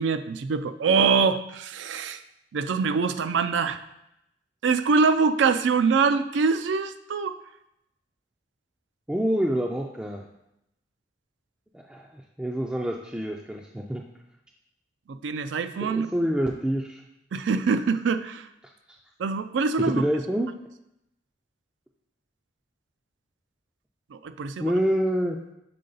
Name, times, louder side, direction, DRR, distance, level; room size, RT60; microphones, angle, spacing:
voice 1, 0.0-2.2 2.5-3.8 4.6-7.4 15.1-16.1 17.3-18.5 19.2-20.0 24.1-24.7, right 5 dB, 85° right, 11 dB, 0.4 m, -24 dB
voice 2, 9.1-10.2 11.9-14.0 15.8-17.0 19.8-20.5 24.6-25.4, equal, 5° right, -1 dB, 0.3 m, -27 dB
6.7 x 3.7 x 3.9 m, 0.83 s
head